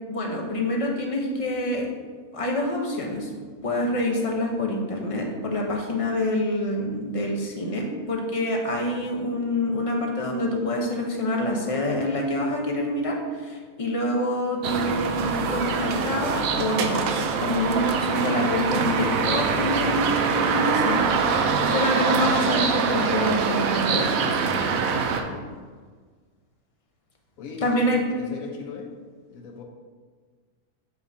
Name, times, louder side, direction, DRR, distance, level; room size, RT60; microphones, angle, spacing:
voice 1, 0.1-1.9 2.3-3.3 3.6-17.0 17.4-21.0 21.7-24.2 27.6-28.0, left 1 dB, 35° left, 0 dB, 0.6 m, -26 dB
sound 1, 14.6-25.2, right 5 dB, 75° right, 1.0 m, -24 dB
voice 2, 25.2-25.5 27.4-28.9 29.3-29.6, left 4 dB, 70° left, 3 dB, 1.1 m, -39 dB
6.7 x 5.4 x 2.7 m, 1.6 s
omnidirectional pair, 1.5 m